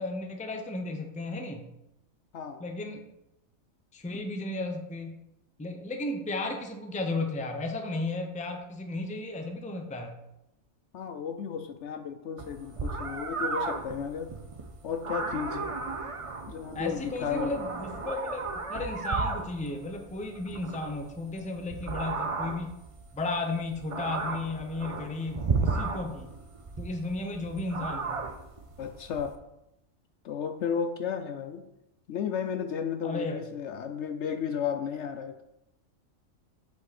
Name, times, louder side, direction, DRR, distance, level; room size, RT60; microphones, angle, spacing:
voice 1, 0.0-1.6 2.6-3.1 3.9-5.2 5.6-10.2 16.7-22.8 23.1-26.3 26.8-28.2 33.0-33.4, left 2 dB, 10° left, 4 dB, 0.5 m, -34 dB
voice 2, 10.9-14.3 14.8-15.7 16.5-17.5 28.8-29.4 30.2-31.6 32.1-35.4, left 7 dB, 65° left, 8 dB, 0.8 m, -33 dB
sound 1, 12.4-29.3, right 4 dB, 40° right, 0.5 m, -34 dB
8.0 x 5.3 x 4.2 m, 0.88 s
omnidirectional pair, 1.4 m